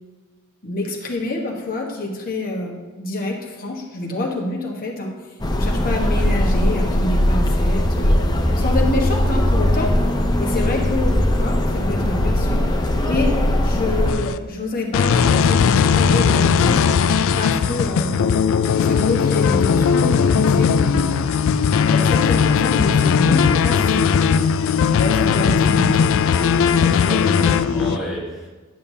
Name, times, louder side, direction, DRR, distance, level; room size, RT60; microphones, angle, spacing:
voice 1, 0.6-5.1 5.5-8.2 8.6-9.9 10.4-16.8 17.3-18.4 18.8-21.2 21.8-24.5 25.0-26.1, left 2 dB, 40° left, 0 dB, 1.3 m, -27 dB
sound 1, 5.4-14.1, left 1 dB, 20° left, 0.6 m, -19 dB
voice 2, 5.6-5.9 10.5-10.6 26.7-28.5, equal, ahead, -7 dB, 2.0 m, -31 dB
sound 2, 14.1-14.4 14.9-28.0, left 6 dB, 65° left, 0.3 m, -17 dB
10.5 x 6.7 x 2.8 m, 1.3 s
head